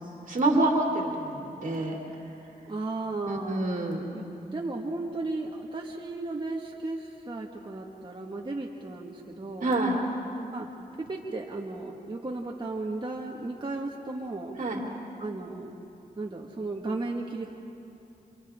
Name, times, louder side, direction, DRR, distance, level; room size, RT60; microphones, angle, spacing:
voice 1, 0.3-2.0 3.3-4.0 9.6-9.9 14.6-14.8, right 2 dB, 55° right, -1 dB, 2.9 m, -26 dB
voice 2, 2.7-3.7 4.1-4.2 4.5-9.7 10.5-10.7 11.0-14.6 15.2-15.7 16.2-17.5, right 2 dB, 30° right, -1 dB, 1.7 m, -35 dB
29.0 x 27.5 x 3.7 m, 2.8 s
cardioid pair, 70°, 16 cm